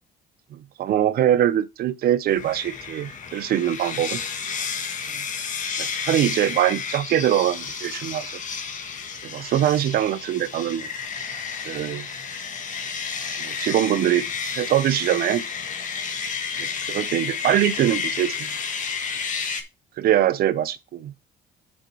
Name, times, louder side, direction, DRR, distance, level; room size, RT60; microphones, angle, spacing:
voice 1, 0.5-4.2 5.2-5.3 5.8-8.4 9.2-10.9 11.6-12.1 13.4-14.2 14.5-15.5 16.6-18.5 20.0-21.1, right 11 dB, 65° right, 0.9 m, -23 dB
sound 1, 2.3-19.6, left 6 dB, 50° left, 1.6 m, -31 dB
6.4 x 6.2 x 4.8 m
cardioid pair, 110°, 17 cm